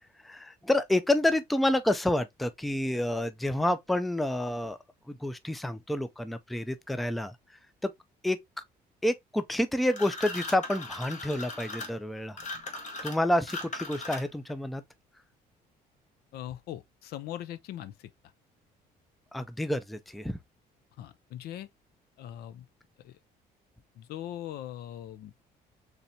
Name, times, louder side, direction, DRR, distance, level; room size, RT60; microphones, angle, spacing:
voice 1, 0.2-4.8 5.1-7.4 7.8-7.9 8.2-8.4 9.0-12.4 13.0-14.8 19.3-20.4, left 1 dB, ahead, 0.4 m, -29 dB
sound 1, 9.9-14.5, left 2 dB, 45° left, 1.2 m, -39 dB
voice 2, 16.3-18.1 21.0-21.7 22.2-22.7 23.0-23.2 24.0-25.4, left 12 dB, 70° left, 0.5 m, -40 dB
4.1 x 3.3 x 2.6 m
cardioid pair, 110°, 17 cm